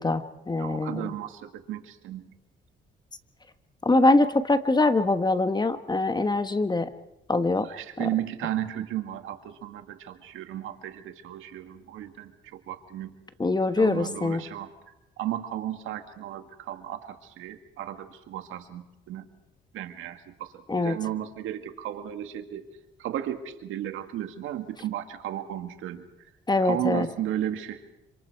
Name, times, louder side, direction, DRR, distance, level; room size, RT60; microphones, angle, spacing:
voice 1, 0.0-1.1 3.8-6.9 7.3-7.7 8.0-8.1 13.4-14.4 20.7-21.0 26.5-27.1, left 2 dB, 20° left, 10 dB, 1.3 m, -23 dB
voice 2, 0.6-2.3 7.6-13.1 13.8-14.7 15.2-19.3 19.7-22.6 23.0-26.0 26.6-27.8, right 12 dB, 90° right, 7 dB, 1.9 m, -34 dB
26.5 x 26.5 x 4.7 m, 0.93 s
cardioid pair, 90°, 20 cm